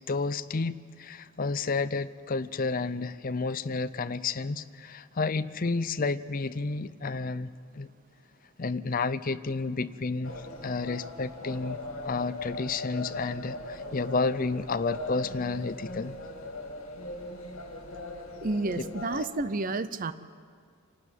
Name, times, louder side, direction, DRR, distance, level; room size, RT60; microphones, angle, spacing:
voice 1, 0.1-7.9 8.6-16.2 18.8-18.9, left 4 dB, 40° left, 13 dB, 0.5 m, -31 dB
sound 1, 10.2-19.2, left 2 dB, 75° left, 2.5 m, -39 dB
voice 2, 18.4-20.1, right 2 dB, 40° right, 13 dB, 0.6 m, -30 dB
26.0 x 12.5 x 9.2 m, 2.1 s
head